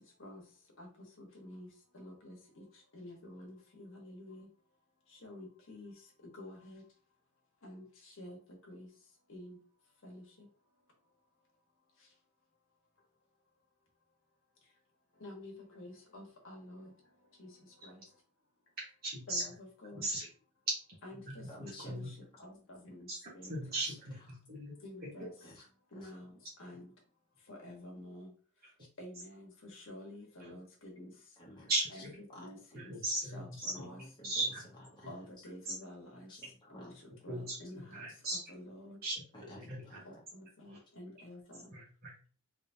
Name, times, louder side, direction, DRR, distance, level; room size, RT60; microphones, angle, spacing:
voice 1, 1.2-1.7 1.9-2.6 2.9-4.5 5.2-5.9 6.4-6.8 7.6-7.8 8.2-8.4 8.7-8.9 9.3-9.6 10.0-10.2 15.2-16.9 17.4-17.5 17.8-18.0 19.3-20.0 21.0-22.0 22.4-23.1 23.3-23.5 24.8-25.3 25.9-26.3 26.6-26.9 27.5-28.3 29.0-31.1 31.9-32.9 33.3-34.0 35.1-36.3 36.7-36.9 37.2-38.0 38.3-39.0 40.0-41.7, left 1 dB, 65° left, 0 dB, 1.3 m, -49 dB
voice 2, 19.0-19.4 20.0-20.3 21.3-21.4 21.8-22.1 23.1-23.2 23.5-24.1 24.5-24.7 25.0-25.1 31.7-31.8 32.7-33.7 34.2-34.6 35.7-35.8 37.3-37.6 37.9-38.4 39.0-39.1 39.6-40.0 40.7-40.8 41.7-42.4, right 1 dB, 45° right, -6 dB, 1.2 m, -36 dB
voice 3, 21.4-21.9 22.3-22.5 23.7-24.4 25.4-26.3 28.8-28.9 30.4-30.6 31.4-31.8 32.3-32.5 33.7-35.3 36.1-36.9 39.3-40.2, left 1 dB, 20° left, -5 dB, 1.2 m, -54 dB
3.5 x 3.3 x 2.7 m, 0.41 s
head